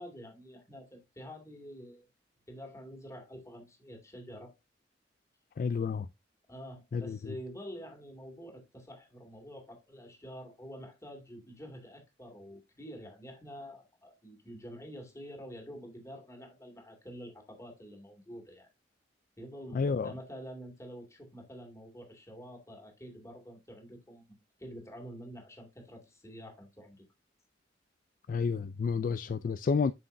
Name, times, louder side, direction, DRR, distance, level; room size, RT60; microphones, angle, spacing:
voice 1, 0.0-2.1 2.5-4.5 5.7-5.8 6.5-18.7 19.4-27.0, equal, 15° left, 2.2 m, -47 dB
voice 2, 5.6-6.1 6.9-7.2 19.7-20.1 28.3-29.9, left 5 dB, 45° left, 0.3 m, -30 dB
7.5 x 6.3 x 2.6 m
head